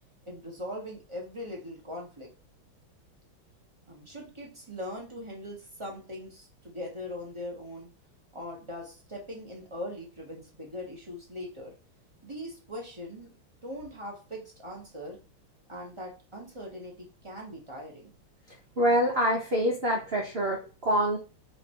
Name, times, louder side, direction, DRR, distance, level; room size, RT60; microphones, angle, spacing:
voice 1, 0.3-2.3 3.9-7.9 8.3-11.7 12.2-13.3 13.6-15.2 15.7-18.1, left 1 dB, 25° right, -2 dB, 0.7 m, -40 dB
voice 2, 18.8-21.2, equal, 90° right, 0 dB, 0.5 m, -25 dB
4.5 x 2.6 x 4.3 m, 0.34 s
omnidirectional pair, 2.2 m